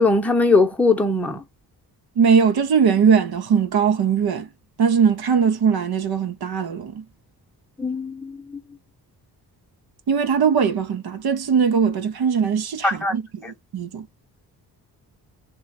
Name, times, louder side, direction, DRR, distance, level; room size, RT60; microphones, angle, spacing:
voice 1, 0.0-1.4 7.8-8.4 12.8-13.2, left 3 dB, 5° left, 0.9 m, -20 dB
voice 2, 2.2-4.5 4.8-7.0 10.1-14.1, right 6 dB, 65° right, 0.9 m, -20 dB
3.2 x 2.3 x 4.1 m
cardioid pair, 75°, 41 cm